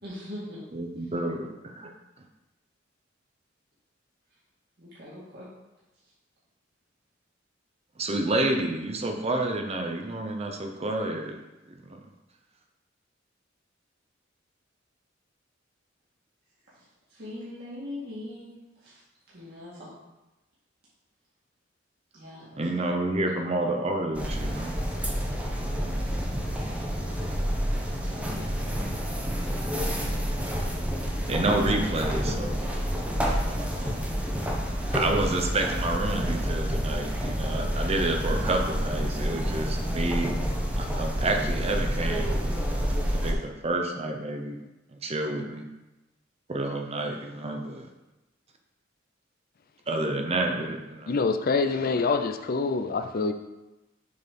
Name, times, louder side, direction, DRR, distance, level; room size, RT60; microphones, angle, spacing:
voice 1, 0.0-0.6 4.8-5.5 16.7-16.8 17.1-18.5 18.8-18.9 19.3-20.0 22.1-23.0 24.9-25.1 28.1-28.8, left 1 dB, 55° right, -8 dB, 1.9 m, -42 dB
voice 2, 0.7-1.9 8.0-11.4 11.7-12.0 22.6-24.7 31.3-32.7 33.3-33.7 34.9-40.4 40.8-42.5 43.1-44.6 44.9-45.7 46.5-47.9 49.9-51.2, right 2 dB, 30° right, 3 dB, 0.7 m, -29 dB
sound 1, 24.1-43.3, equal, 5° right, 0.9 m, -28 dB
voice 3, 51.1-53.3, left 4 dB, 50° left, 8 dB, 0.5 m, -25 dB
6.8 x 4.0 x 5.3 m, 1.0 s
head